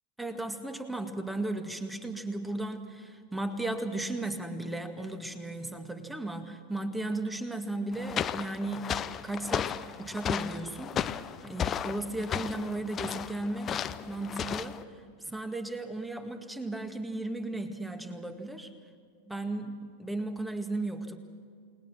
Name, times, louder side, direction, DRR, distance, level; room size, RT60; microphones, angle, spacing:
voice 1, 0.2-8.9 9.2-11.0 11.4-14.8 15.2-18.7 19.3-21.2, right 2 dB, 5° right, 8 dB, 1.9 m, -35 dB
sound 1, 7.9-14.8, left 9 dB, 25° left, 0.8 m, -34 dB
29.0 x 20.0 x 6.2 m, 2.2 s
figure-of-eight pair, 90°, 0 cm